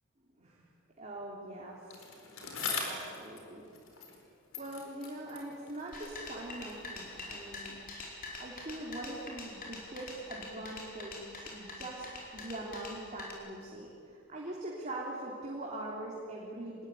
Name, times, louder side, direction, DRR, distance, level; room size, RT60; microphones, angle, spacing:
voice 1, 1.0-2.0 2.8-3.6 4.6-7.8 8.4-16.9, right 1 dB, 30° right, -3 dB, 3.5 m, -42 dB
Bicycle, 1.9-4.3 4.5-6.9 7.7-7.8, left 4 dB, 70° left, 4.8 m, -42 dB
sound 1, 5.9-13.3, left 2 dB, 40° left, 4.9 m, -45 dB
25.5 x 21.0 x 9.3 m, 2.7 s
head